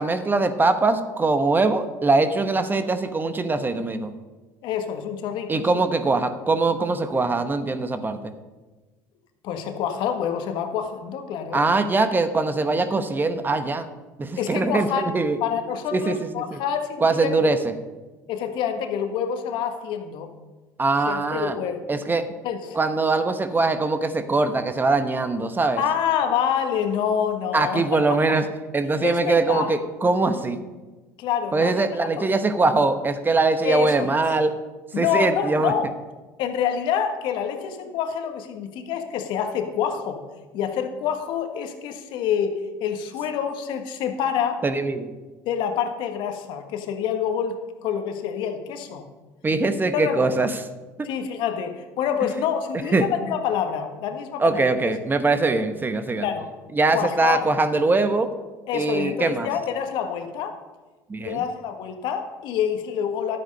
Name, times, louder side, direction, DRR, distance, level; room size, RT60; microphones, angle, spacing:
voice 1, 0.0-4.1 5.5-8.3 11.5-13.9 14.2-15.4 15.9-16.6 17.0-17.7 20.8-21.6 21.9-22.3 22.7-25.8 27.5-28.4 28.7-30.6 31.5-34.5 34.9-35.7 44.6-45.1 49.4-50.5 51.0-51.1 52.9-53.0 54.4-56.3 56.7-58.3 58.7-59.5 61.1-61.4, right 3 dB, 20° right, 9 dB, 1.1 m, -22 dB
voice 2, 4.6-5.7 9.4-11.6 14.4-15.1 15.4-17.3 18.3-20.3 21.1-21.8 22.4-22.8 25.8-28.2 29.0-29.7 31.2-31.9 32.2-32.3 33.6-34.1 34.9-35.9 36.4-40.2 40.5-44.6 45.4-49.0 49.9-50.3 51.0-54.9 56.2-56.5 56.9-57.5 58.7-60.6 61.2-63.4, left 8 dB, 65° left, 7 dB, 1.5 m, -27 dB
12.0 x 8.9 x 5.4 m, 1.2 s
hypercardioid pair, 75°, 9 cm